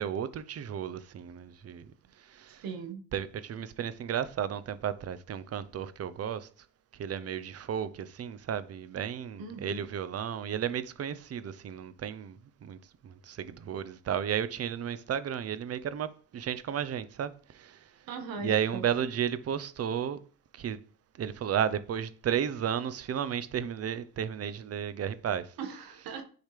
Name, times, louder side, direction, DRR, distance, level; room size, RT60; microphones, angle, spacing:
voice 1, 0.0-1.9 2.2-2.6 3.1-6.5 6.9-17.9 18.4-20.2 20.5-20.8 21.1-25.5, right 9 dB, 40° right, 0.8 m, -33 dB
voice 2, 2.6-3.0 9.4-9.9 18.1-18.8 25.6-26.2, right 5 dB, 70° right, 1.7 m, -39 dB
10.5 x 5.0 x 3.4 m
cardioid pair, 100°, 36 cm